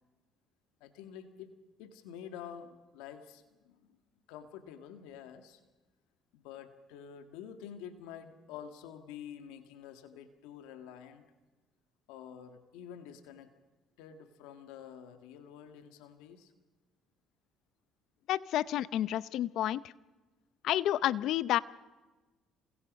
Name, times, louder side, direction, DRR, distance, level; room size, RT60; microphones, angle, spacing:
voice 1, 0.8-4.0 4.3-5.6 6.3-11.3 12.1-13.5 14.0-16.5, left 8 dB, 85° left, 7 dB, 1.8 m, -48 dB
voice 2, 18.3-19.8 20.6-21.6, left 12 dB, 70° left, 18 dB, 0.6 m, -30 dB
28.0 x 20.5 x 5.3 m, 1.2 s
supercardioid pair, 80°, 0 cm